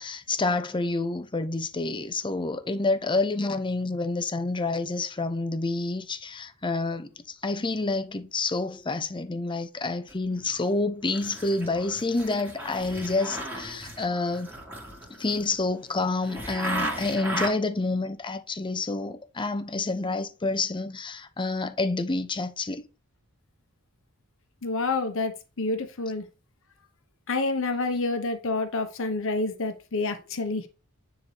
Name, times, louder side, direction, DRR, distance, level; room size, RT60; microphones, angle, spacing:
voice 1, 0.0-14.5 15.2-22.8, left 3 dB, 20° left, 0.7 m, -28 dB
sound 1, 10.1-10.8 11.1-17.5, right 1 dB, 10° right, 2.4 m, -36 dB
voice 2, 24.6-26.2 27.3-30.7, left 3 dB, 65° left, 1.1 m, -28 dB
9.7 x 3.9 x 3.3 m
head